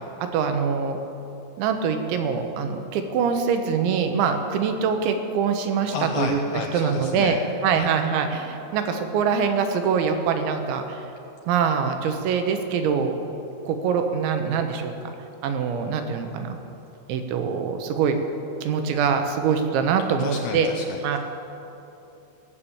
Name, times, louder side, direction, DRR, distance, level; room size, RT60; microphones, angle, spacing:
voice 1, 0.2-1.0 1.6-6.4 6.7-7.4 7.6-11.0 11.5-13.2 13.6-14.9 15.4-16.6 17.1-18.2 18.6-20.7 21.0-21.2, right 6 dB, 85° right, 6 dB, 3.4 m, -24 dB
voice 2, 5.9-7.4 7.7-7.9 20.2-21.2, left 6 dB, 85° left, 2 dB, 2.3 m, -32 dB
18.5 x 7.1 x 8.6 m, 3.0 s
omnidirectional pair, 5.4 m